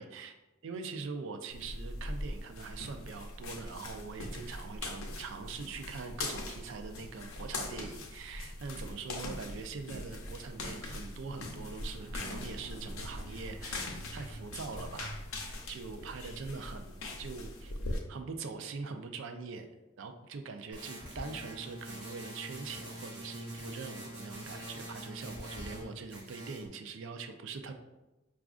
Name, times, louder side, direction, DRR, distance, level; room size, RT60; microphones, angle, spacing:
voice 1, 0.0-0.3 0.6-19.7 20.0-27.7, right 4 dB, 65° right, 6 dB, 0.4 m, -43 dB
sound 1, 1.5-18.0, left 2 dB, 80° left, 0.6 m, -41 dB
sound 2, 20.7-25.8 26.1-26.7, right 1 dB, 25° right, 1.5 m, -44 dB
4.9 x 2.4 x 2.4 m, 1.0 s
head